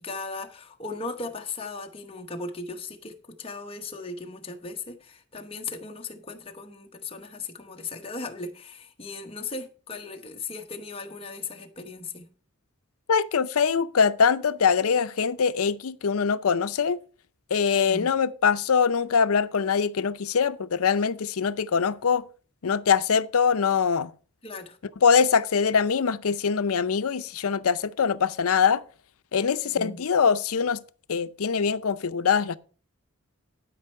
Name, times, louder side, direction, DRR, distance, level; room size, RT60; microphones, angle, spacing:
voice 1, 0.0-12.3 17.7-18.1 24.4-24.8 29.6-30.0, left 3 dB, 25° left, 0.9 m, -37 dB
voice 2, 13.1-17.0 17.5-22.2 22.6-24.1 25.0-28.8 29.3-30.8 31.1-32.6, left 6 dB, 80° left, 0.5 m, -23 dB
12.0 x 5.4 x 4.4 m
head